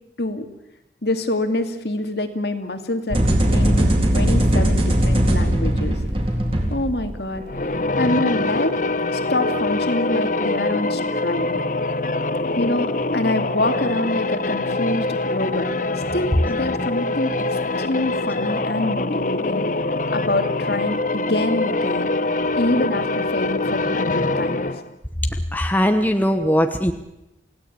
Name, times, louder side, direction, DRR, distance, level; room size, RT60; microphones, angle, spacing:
voice 1, 1.0-6.0 6.7-7.4 8.0-8.7 9.1-11.5 12.6-15.7 16.1-17.3 17.8-19.7 20.1-22.1 22.6-24.7, left 1 dB, 60° left, 7 dB, 2.5 m, -25 dB
sound 1, 3.1-7.4, right 1 dB, 30° right, 3.9 m, -19 dB
sound 2, 7.4-24.9, left 2 dB, 45° left, 1.1 m, -24 dB
voice 2, 25.2-26.9, equal, 10° left, 6 dB, 1.1 m, -20 dB
28.5 x 17.0 x 8.9 m, 0.92 s
head